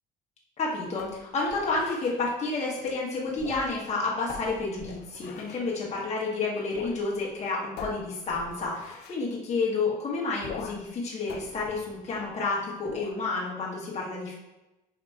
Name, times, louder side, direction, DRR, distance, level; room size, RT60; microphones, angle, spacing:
voice 1, 0.6-14.3, left 3 dB, 40° left, -5 dB, 1.2 m, -30 dB
sound 1, 1.0-2.2 3.3-3.9 4.3-5.7 6.7-7.0 7.3-7.4 7.8-9.2 10.4-10.9 11.3-12.4 12.9-13.2, left 5 dB, 70° left, 0.5 m, -43 dB
4.9 x 2.9 x 2.3 m, 0.98 s
cardioid pair, 110°, 17 cm